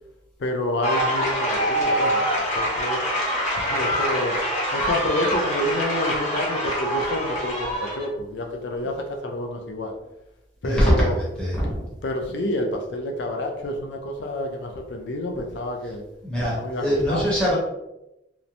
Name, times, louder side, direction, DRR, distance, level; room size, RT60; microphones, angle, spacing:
voice 1, 0.4-3.0 3.6-4.4 4.7-9.9 10.6-11.2 12.0-16.0 16.6-17.3, left 1 dB, 75° left, 3 dB, 0.5 m, -28 dB
sound 1, 0.8-8.0, equal, 40° left, 0.9 m, -25 dB
voice 2, 10.6-11.8 16.2-17.6, equal, 5° left, -7 dB, 0.9 m, -23 dB
3.0 x 2.1 x 2.5 m, 0.90 s
head